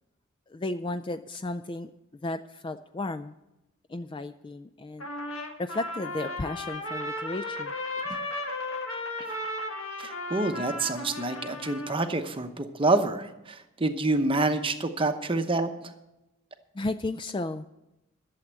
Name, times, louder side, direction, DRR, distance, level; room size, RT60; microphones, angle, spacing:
voice 1, 0.5-1.9 2.2-3.3 3.9-5.1 5.6-7.7 8.1-8.3 16.7-17.7, left 2 dB, 20° left, 10 dB, 0.3 m, -34 dB
Trumpet, 5.0-12.1, left 1 dB, 65° left, 1.7 m, -35 dB
voice 2, 10.0-15.7, right 2 dB, 25° right, 8 dB, 0.9 m, -27 dB
12.0 x 7.3 x 8.0 m, 0.93 s
head